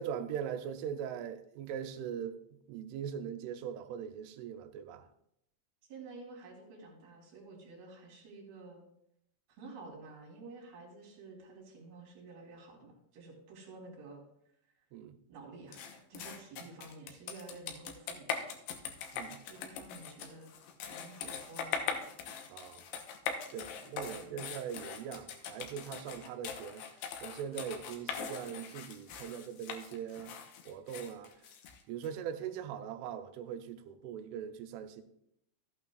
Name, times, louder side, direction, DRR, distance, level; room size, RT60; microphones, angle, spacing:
voice 1, 0.0-2.4 2.7-5.0 14.9-15.2 19.1-19.5 22.5-22.9 23.5-26.8 27.2-30.4 30.7-31.3 31.9-35.0, right 8 dB, 85° right, 3.1 m, -41 dB
voice 2, 5.9-8.8 9.5-14.2 15.3-18.5 19.5-20.5 20.9-22.1 23.7-24.5 32.0-32.1, right 3 dB, 60° right, 3.4 m, -51 dB
sound 1, 15.7-32.1, left 7 dB, 80° left, 2.6 m, -41 dB
13.5 x 8.7 x 2.4 m
omnidirectional pair, 5.6 m